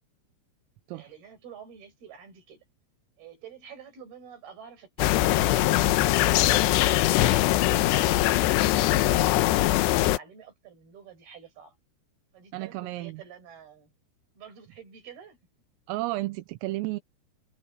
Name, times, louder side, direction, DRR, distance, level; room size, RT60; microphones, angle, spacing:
voice 1, 0.9-2.6 3.2-6.3 6.7-9.3 9.7-11.8 12.3-13.9 14.4-15.4, right 7 dB, 50° right, 7.2 m, -49 dB
sound 1, 5.0-10.2, left 15 dB, 80° left, 2.5 m, -22 dB
voice 2, 12.5-13.2 15.9-17.0, right 19 dB, 85° right, 3.6 m, -32 dB
omnidirectional pair, 5.8 m